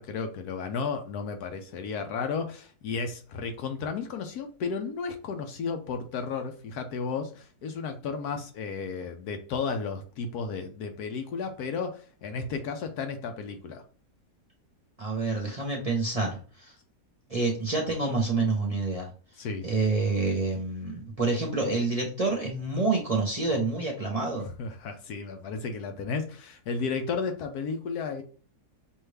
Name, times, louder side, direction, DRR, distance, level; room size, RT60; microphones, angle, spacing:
voice 1, 0.0-13.8 19.4-19.7 24.6-28.2, left 5 dB, 70° left, 1.2 m, -33 dB
voice 2, 15.0-16.7 17.3-19.1 19.6-24.5, right 3 dB, 30° right, 0.9 m, -28 dB
5.5 x 2.6 x 3.3 m
omnidirectional pair, 1.8 m